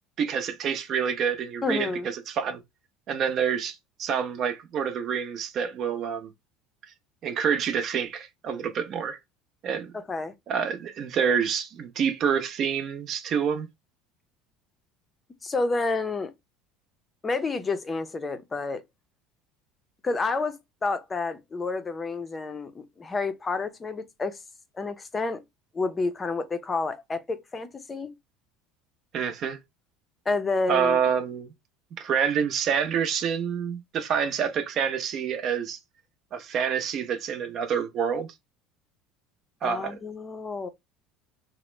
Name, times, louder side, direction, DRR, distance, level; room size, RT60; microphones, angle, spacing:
voice 1, 0.2-2.6 3.1-6.3 7.2-9.2 9.6-9.9 10.5-13.7 29.1-29.6 30.7-31.5 32.0-35.8 36.3-38.3 39.6-40.0, right 7 dB, 45° right, 0.7 m, -27 dB
voice 2, 1.6-2.1 9.9-10.3 15.4-16.3 17.2-18.8 20.0-24.4 24.7-25.4 25.7-28.1 30.3-31.0 39.6-40.7, left 3 dB, 20° left, 0.5 m, -29 dB
2.9 x 2.1 x 3.1 m
supercardioid pair, 115°, 0 cm